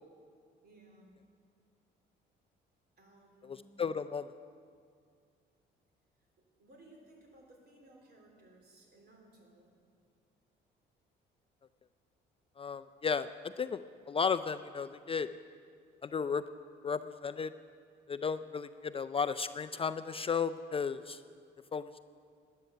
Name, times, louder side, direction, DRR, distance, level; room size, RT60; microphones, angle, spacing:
voice 1, 0.6-1.1 3.0-3.6 6.4-9.7, right 2 dB, 55° right, 1 dB, 3.1 m, -60 dB
voice 2, 3.4-4.3 12.6-13.3 13.6-13.8 14.1-15.3 16.0-16.4 16.8-17.5 18.1-21.2 21.7-22.0, left 6 dB, 30° left, 11 dB, 0.4 m, -34 dB
13.0 x 9.5 x 6.8 m, 2.2 s
cardioid pair, 85°, 20 cm